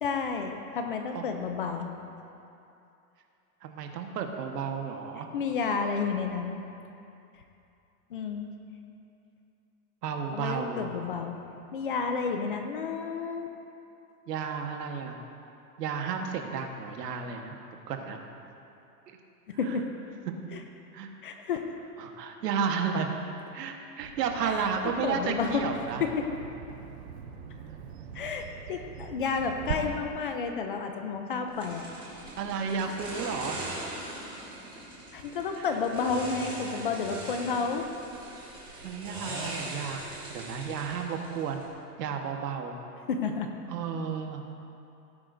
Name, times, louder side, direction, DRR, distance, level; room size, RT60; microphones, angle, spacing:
voice 1, 0.0-1.9 5.3-6.6 8.1-8.5 10.3-11.4 11.7-13.5 19.5-19.8 20.5-20.6 21.2-21.6 24.4-24.7 25.0-25.6 26.0-26.2 28.1-31.8 32.2-32.3 35.1-37.8 43.1-43.5, left 5 dB, 35° left, 5 dB, 0.5 m, -31 dB
voice 2, 3.6-5.3 10.0-10.9 14.3-15.2 15.8-17.5 17.9-18.2 19.6-19.8 20.9-21.1 22.0-23.1 23.5-26.0 29.4-29.5 29.9-30.0 32.4-33.6 35.6-35.7 38.8-40.0 40.3-41.6 42.0-42.8 43.7-44.4, right 6 dB, 80° right, 3 dB, 1.4 m, -32 dB
Bird vocalization bird call bird song, 24.0-29.7, right 8 dB, 45° right, 0.6 m, -42 dB
sound 1, 31.6-41.7, right 2 dB, 10° right, 1.5 m, -41 dB
18.0 x 10.0 x 2.6 m, 2.7 s
supercardioid pair, 180°, 48 cm